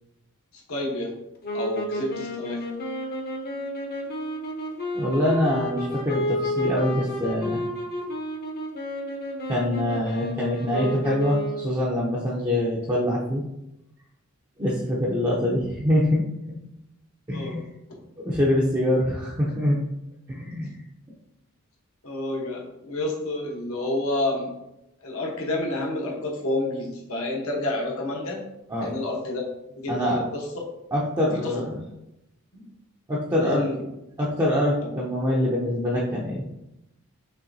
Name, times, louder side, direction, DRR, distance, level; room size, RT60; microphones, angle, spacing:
voice 1, 0.5-1.2 1.5-2.6 15.5-15.6 17.3-17.6 20.5-20.8 22.0-24.5 25.0-28.5 28.8-29.4 29.7-30.5 31.4-31.6 32.5-32.7 33.4-33.8 34.8-34.9, left 2 dB, 75° left, -1 dB, 1.0 m, -29 dB
sound 1, 1.4-11.8, left 1 dB, 45° left, 0.7 m, -31 dB
voice 2, 4.9-7.6 9.5-13.4 14.6-16.2 17.3-17.6 18.2-19.8 20.3-20.8 28.7-28.9 29.9-30.2 30.9-31.7 33.1-33.6 34.2-36.5, left 1 dB, 20° right, -5 dB, 0.5 m, -24 dB
5.6 x 3.1 x 2.6 m, 0.88 s
head